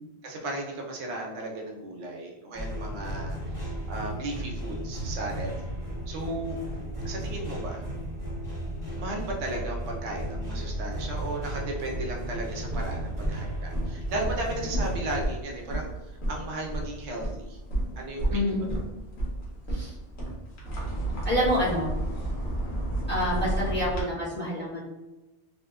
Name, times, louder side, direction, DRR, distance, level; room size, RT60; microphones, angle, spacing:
voice 1, 0.2-5.5 6.1-6.6 7.0-7.8 9.0-15.9 16.3-17.6 18.0-18.8, right 2 dB, 90° right, -1 dB, 0.9 m, -35 dB
sound 1, 2.5-15.2, right 1 dB, 30° left, 1.2 m, -34 dB
sound 2, 11.9-24.0, right 1 dB, 80° left, 1.1 m, -32 dB
voice 2, 18.3-18.6 19.7-19.9 21.2-21.9 23.1-24.8, equal, 10° left, -9 dB, 0.9 m, -27 dB
2.8 x 2.1 x 2.3 m, 1.1 s
omnidirectional pair, 1.1 m